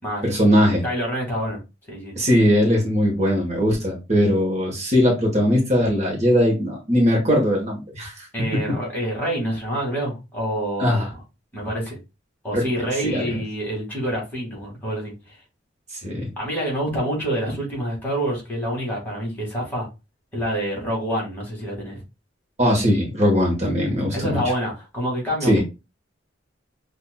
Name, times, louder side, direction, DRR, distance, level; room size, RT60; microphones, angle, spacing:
voice 1, 0.2-0.8 2.2-8.1 10.8-11.1 12.5-12.6 13.0-13.3 16.0-16.3 22.6-24.4 25.5-25.6, equal, 35° right, 1.1 m, -20 dB
voice 2, 0.8-1.6 1.9-2.2 8.3-11.2 11.5-12.0 12.4-15.4 16.4-19.9 20.3-22.0 24.1-25.6, equal, 10° left, 1.8 m, -27 dB
5.7 x 2.6 x 2.2 m
head